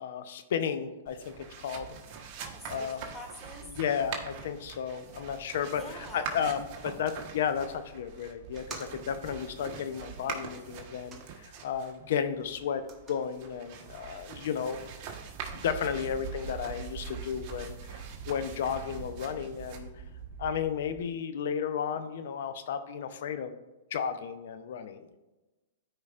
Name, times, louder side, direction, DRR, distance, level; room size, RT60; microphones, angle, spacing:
voice 1, 0.0-1.9 2.7-3.0 3.7-12.8 13.1-14.8 15.5-19.9 20.4-23.5 23.9-25.2, left 7 dB, 65° left, 10 dB, 0.7 m, -33 dB
sound 1, 1.1-21.0, right 6 dB, 45° right, 1.2 m, -43 dB
voice 2, 2.4-3.7 5.7-6.4, left 1 dB, 10° left, 0 dB, 1.7 m, -46 dB
sound 2, 8.4-11.9 12.2-14.2, right 4 dB, 20° right, 1.1 m, -52 dB
13.5 x 4.8 x 2.5 m, 1.1 s
hypercardioid pair, 125°, 0 cm